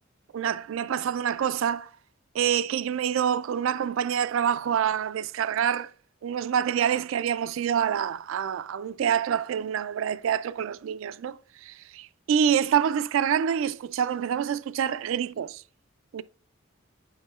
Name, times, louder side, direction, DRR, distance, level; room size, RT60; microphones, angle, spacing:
voice 1, 0.3-1.9 2.3-5.9 6.2-15.6 16.1-16.2, right 8 dB, 70° right, 0.3 m, -26 dB
10.0 x 4.8 x 2.4 m
head